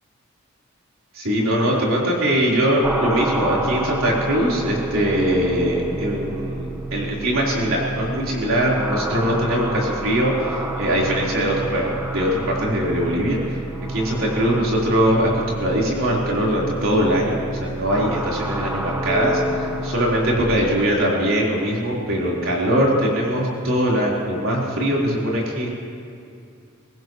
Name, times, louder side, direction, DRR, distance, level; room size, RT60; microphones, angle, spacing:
voice 1, 1.1-13.6 13.9-25.7, equal, 70° right, -5 dB, 4.1 m, -21 dB
sound 1, 2.8-20.5, right 2 dB, 10° right, 1.0 m, -29 dB
23.0 x 19.0 x 3.2 m, 2.4 s
head